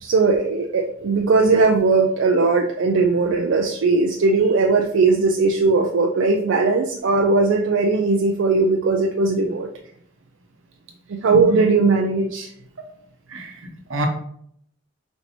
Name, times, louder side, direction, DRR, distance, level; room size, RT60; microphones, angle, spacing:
voice 1, 0.0-9.7 11.1-12.5, right 3 dB, 70° right, 0.4 m, -18 dB
voice 2, 13.3-14.1, right 1 dB, 90° right, 1.0 m, -29 dB
4.4 x 2.7 x 4.2 m
head